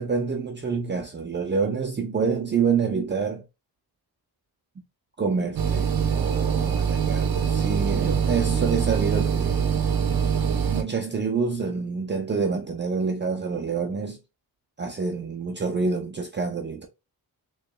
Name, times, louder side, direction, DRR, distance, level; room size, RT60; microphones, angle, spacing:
voice 1, 0.0-3.4 5.2-9.6 10.7-14.2 14.8-16.9, right 5 dB, 25° right, 0.6 m, -27 dB
sound 1, 5.6-10.8, right 7 dB, 60° right, 0.8 m, -24 dB
6.6 x 3.1 x 2.2 m
wide cardioid pair, 155°, 40 cm